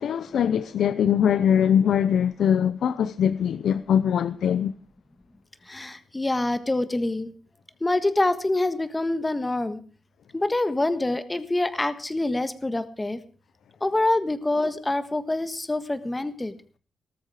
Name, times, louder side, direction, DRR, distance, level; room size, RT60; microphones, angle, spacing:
voice 1, 0.0-4.7, left 8 dB, 75° left, 0.7 m, -22 dB
voice 2, 5.7-7.3 7.8-9.8 10.3-13.2 13.8-16.5, left 2 dB, 15° left, 1.5 m, -26 dB
18.5 x 13.5 x 4.9 m
wide cardioid pair, 145°, 0 cm